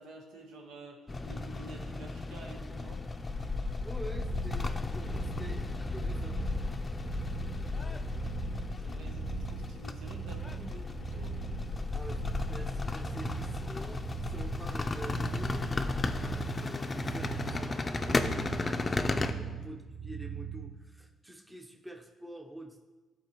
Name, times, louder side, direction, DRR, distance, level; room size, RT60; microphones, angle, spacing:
voice 1, 0.0-3.1 8.8-11.3, right 2 dB, 90° right, 1 dB, 1.1 m, -49 dB
sound 1, 1.1-19.3, left 3 dB, 25° left, 0.5 m, -34 dB
voice 2, 3.8-6.4 7.4-7.5 7.8-8.1 11.9-15.9 16.2-22.9, right 1 dB, 10° right, 2 dB, 0.8 m, -47 dB
sound 2, 4.1-20.8, right 7 dB, 45° right, 0.5 m, -41 dB
12.5 x 4.3 x 3.0 m, 1.2 s
cardioid pair, 90°, 0 cm